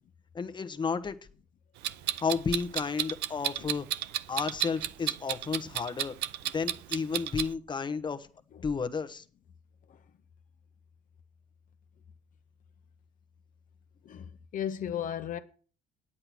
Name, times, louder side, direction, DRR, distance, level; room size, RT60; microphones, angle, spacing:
voice 1, 0.3-1.2 2.2-3.9 4.3-6.1 6.4-8.3 8.6-9.2, left 5 dB, 25° left, 1.1 m, -32 dB
Clock, 1.8-7.5, right 13 dB, 90° right, 0.5 m, -32 dB
voice 2, 14.0-15.4, left 9 dB, 50° left, 0.9 m, -35 dB
9.9 x 8.7 x 6.1 m
cardioid pair, 110°, 17 cm